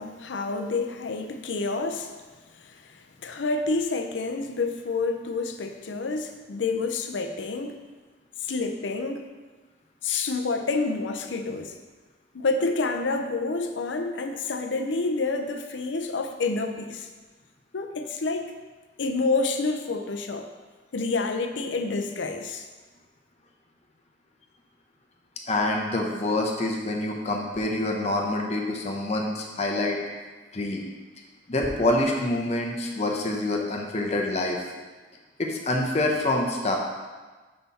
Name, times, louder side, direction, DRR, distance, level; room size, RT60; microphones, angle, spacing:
voice 1, 0.0-2.1 2.6-7.8 8.4-9.3 10.0-11.8 12.3-17.1 17.7-18.5 19.0-20.5 20.9-22.7, left 3 dB, 85° left, 6 dB, 0.6 m, -28 dB
voice 2, 25.5-30.0 30.5-30.8 31.5-34.6 35.4-36.8, left 1 dB, 35° left, 0 dB, 0.7 m, -26 dB
5.6 x 5.6 x 4.2 m, 1.3 s
head